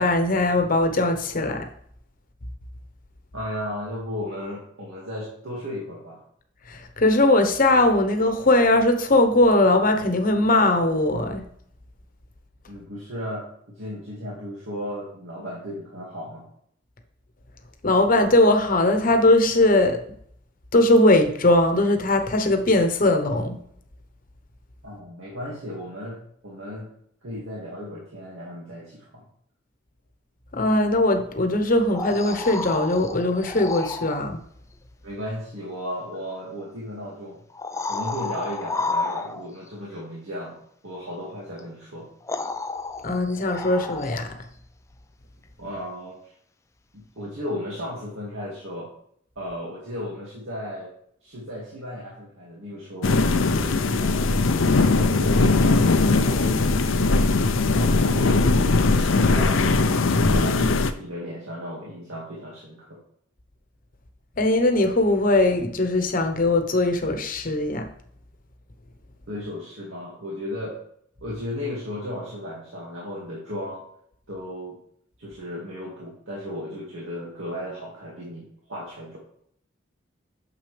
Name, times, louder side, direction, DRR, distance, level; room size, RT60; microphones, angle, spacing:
voice 1, 0.0-1.6 6.7-11.5 17.8-20.0 20.7-23.6 30.5-34.4 43.0-44.3 64.4-67.9, left 2 dB, 45° left, 5 dB, 1.0 m, -20 dB
voice 2, 3.3-6.2 12.7-13.5 13.7-16.5 24.8-26.9 27.2-29.2 35.0-37.4 37.9-42.1 45.6-46.2 46.9-48.9 49.4-50.9 51.2-54.5 54.9-56.7 57.7-60.6 61.0-63.0 69.3-70.8 71.2-73.8 74.3-74.8 75.2-79.2, left 1 dB, 80° right, -5 dB, 2.3 m, -35 dB
sound 1, 31.7-34.3 36.1-36.2 37.5-39.7 41.6-41.7 42.2-44.4 47.5-47.6, left 3 dB, 15° left, 0.4 m, -31 dB
sound 2, 53.0-60.9, left 3 dB, 85° left, 0.6 m, -20 dB
9.1 x 6.8 x 3.4 m, 0.67 s
head